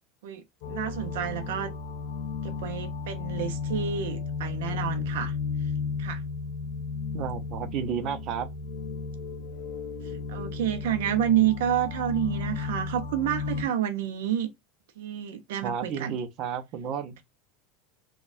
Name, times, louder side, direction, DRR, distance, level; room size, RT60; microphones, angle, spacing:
voice 1, 0.2-1.7 2.4-5.3 6.0-6.2 10.3-14.5 15.0-16.1, right 10 dB, 90° right, 0.6 m, -29 dB
sound 1, 0.6-13.6, left 5 dB, 70° left, 0.6 m, -34 dB
voice 2, 7.1-8.5 15.6-17.1, right 7 dB, 45° right, 0.6 m, -32 dB
4.1 x 2.3 x 2.5 m
supercardioid pair, 145°, 0 cm